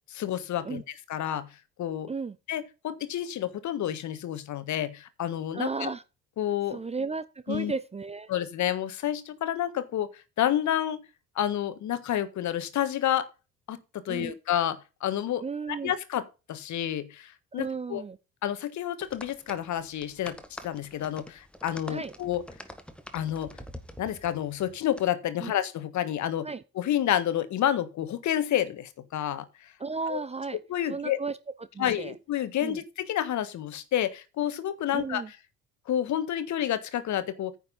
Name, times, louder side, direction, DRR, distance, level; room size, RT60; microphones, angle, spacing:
voice 1, 0.1-0.8 1.1-1.5 1.8-2.1 2.5-5.9 6.4-6.8 7.5-7.7 8.3-10.1 10.4-11.0 11.3-13.3 13.7-15.4 15.8-16.2 16.5-18.0 18.4-20.4 20.6-22.4 23.1-23.6 24.0-26.5 26.7-29.4 30.1-30.2 30.7-31.2 31.8-35.2 35.9-37.5, left 11 dB, 45° left, 1.5 m, -29 dB
voice 2, 5.5-6.0 6.7-8.3 14.1-14.3 15.4-15.9 17.5-18.2 21.9-22.1 25.4-25.5 26.4-26.6 29.8-30.6 30.9-32.1 32.6-32.8 34.9-35.3, right 4 dB, 15° right, 0.7 m, -34 dB
sound 1, 19.0-25.0, equal, 5° left, 1.6 m, -46 dB
9.9 x 6.5 x 5.3 m
figure-of-eight pair, 55°, 41 cm